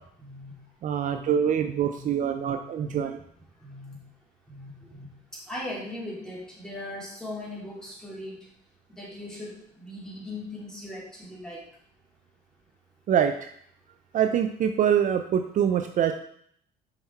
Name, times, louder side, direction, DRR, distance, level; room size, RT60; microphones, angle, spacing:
voice 1, 0.2-0.5 1.0-1.3 1.9-3.0 3.6-4.0 4.5-5.0 5.5-8.5 8.9-11.6, left 1 dB, 5° left, -5 dB, 2.8 m, -39 dB
voice 2, 0.8-3.2 13.1-13.5 14.1-16.1, right 9 dB, 50° right, 7 dB, 0.5 m, -24 dB
5.8 x 5.5 x 4.5 m, 0.66 s
cardioid pair, 110°, 17 cm